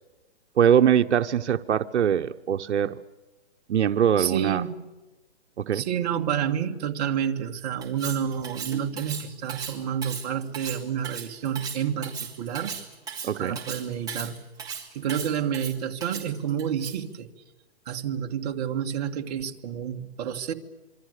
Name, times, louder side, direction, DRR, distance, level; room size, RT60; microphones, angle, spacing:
voice 1, 0.6-3.0 3.7-4.6 5.6-5.8 13.2-13.6, right 9 dB, 80° right, 8 dB, 1.1 m, -22 dB
voice 2, 4.2-4.9 5.7-12.7 13.4-14.4 14.9-17.3 17.9-20.5, right 8 dB, 35° right, 3 dB, 1.9 m, -29 dB
Cutlery silverware, 7.8-17.1, right 6 dB, 10° right, 3.4 m, -37 dB
27.0 x 25.0 x 6.7 m, 1.1 s
hypercardioid pair, 165°, 34 cm